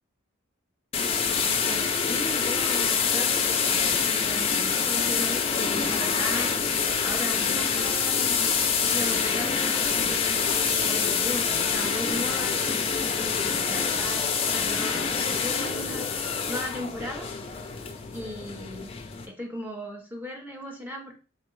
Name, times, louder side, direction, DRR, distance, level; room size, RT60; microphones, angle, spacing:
sound 1, 0.9-19.3, left 6 dB, 25° left, 0.4 m, -26 dB
voice 1, 1.7-6.5 7.0-8.4 8.8-12.6 13.1-17.3 18.1-18.9 19.3-21.1, left 1 dB, 10° right, 1 dB, 0.6 m, -37 dB
3.5 x 2.6 x 3.1 m, 0.34 s
head